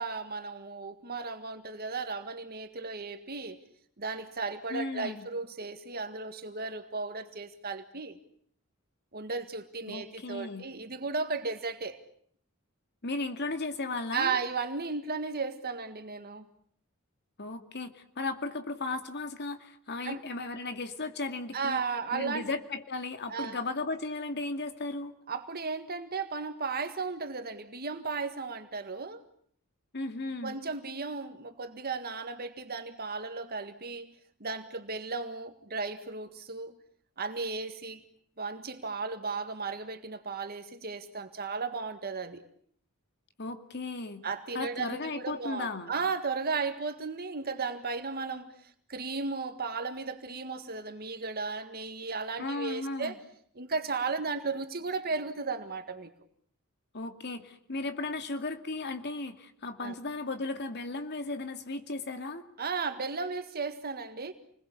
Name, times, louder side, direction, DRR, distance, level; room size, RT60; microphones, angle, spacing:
voice 1, 0.0-3.6 4.0-8.2 9.1-12.0 14.1-16.5 20.0-20.2 21.5-22.5 23.3-23.6 25.3-29.2 30.4-34.1 34.4-36.8 37.2-38.0 38.4-42.4 44.2-53.2 53.6-56.1 59.8-59.9 62.6-64.3, right 4 dB, 45° right, 1.8 m, -35 dB
voice 2, 4.7-5.3 9.9-10.6 13.0-14.4 17.4-21.8 22.1-25.1 29.9-30.6 43.4-44.2 44.5-45.9 52.4-53.2 56.9-62.4, left 3 dB, 50° left, 2.4 m, -35 dB
28.5 x 21.0 x 8.4 m
head